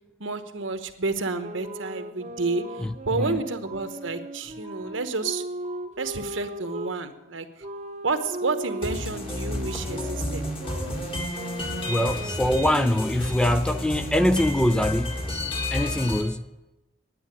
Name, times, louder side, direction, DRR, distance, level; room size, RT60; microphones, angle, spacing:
voice 1, 0.2-5.4 6.0-7.5 8.0-10.4, right 3 dB, 85° right, 1.1 m, -30 dB
sound 1, 1.4-7.0 7.6-13.1, right 1 dB, 35° right, 0.8 m, -38 dB
sound 2, 1.6-2.3 2.6-3.4 3.6-4.4 4.6-5.4 5.6-6.4 6.6-7.4 7.6-8.4 8.6-9.4 9.6-10.4 10.6-11.4, right 7 dB, 65° left, 5.2 m, -50 dB
voice 2, 2.8-3.4 11.9-15.3 15.7-16.4, left 1 dB, 5° left, 0.3 m, -23 dB
sound 3, 8.8-16.2, left 1 dB, 30° left, 1.8 m, -31 dB
9.7 x 9.6 x 8.7 m
head